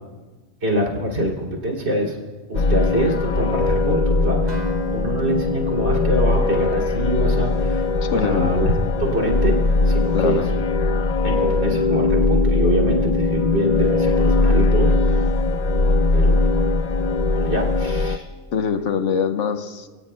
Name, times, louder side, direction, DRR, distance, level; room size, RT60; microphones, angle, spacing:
voice 1, 0.6-2.2 2.5-8.7 9.0-9.5 9.8-10.4 11.2-15.3 16.1-16.4 17.3-18.3, equal, 55° right, -1 dB, 3.1 m, -25 dB
sound 1, 2.5-18.2, left 3 dB, 50° left, 0.5 m, -20 dB
Acoustic guitar, 4.5-8.3, equal, 30° right, 3.2 m, -40 dB
voice 2, 8.0-8.5 10.1-10.5 18.5-19.9, left 7 dB, 65° left, 7 dB, 1.2 m, -23 dB
29.0 x 18.0 x 2.2 m, 1.3 s
omnidirectional pair, 1.4 m